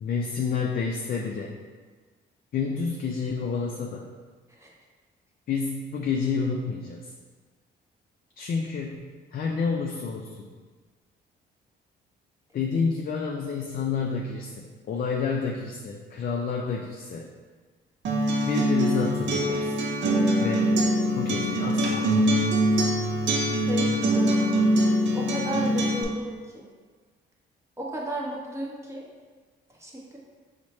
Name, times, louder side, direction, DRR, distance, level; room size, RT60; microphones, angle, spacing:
voice 1, 0.0-1.6 2.5-4.1 5.5-7.1 8.4-10.5 12.5-17.3 18.5-19.8 20.4-20.7 21.1-22.6, left 5 dB, 50° left, 0 dB, 0.4 m, -29 dB
Acoustic guitar, 18.0-26.0, right 1 dB, 70° right, 0.6 m, -23 dB
voice 2, 23.7-24.7 25.1-26.7 27.8-29.0 29.8-30.2, equal, 15° right, -3 dB, 0.9 m, -34 dB
4.7 x 2.1 x 4.1 m, 1.4 s
cardioid pair, 90°, 20 cm